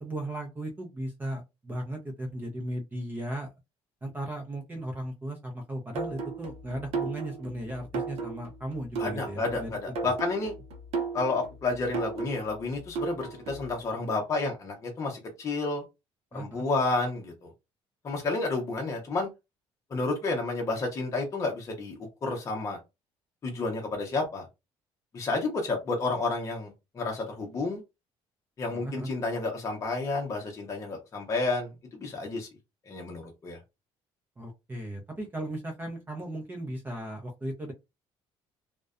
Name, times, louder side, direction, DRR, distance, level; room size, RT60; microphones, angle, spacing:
voice 1, 0.0-3.5 4.0-9.7 10.0-10.1 16.3-16.6 28.7-29.1 34.4-37.7, right 1 dB, 20° right, 0.6 m, -36 dB
sound 1, 6.0-13.8, right 4 dB, 65° right, 0.6 m, -36 dB
voice 2, 9.0-10.5 11.1-15.8 16.3-17.5 18.0-19.3 19.9-22.0 22.2-22.8 23.4-24.5 25.1-27.8 28.6-31.7 32.0-32.5 32.9-33.6, left 3 dB, 30° left, 0.7 m, -30 dB
2.5 x 2.1 x 2.4 m
cardioid pair, 135°, 11 cm